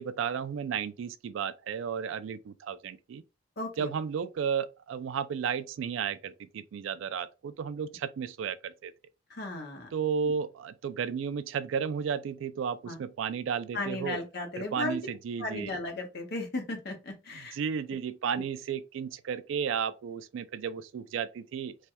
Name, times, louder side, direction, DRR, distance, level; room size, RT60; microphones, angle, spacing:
voice 1, 0.0-3.2 3.8-8.9 9.9-14.2 14.6-15.7 17.3-21.8, right 7 dB, 80° right, 0.3 m, -33 dB
voice 2, 3.6-3.9 9.3-9.9 10.2-10.3 12.8-13.0 13.7-15.0 15.4-17.6, left 2 dB, 60° left, 0.9 m, -35 dB
3.2 x 2.2 x 2.7 m
head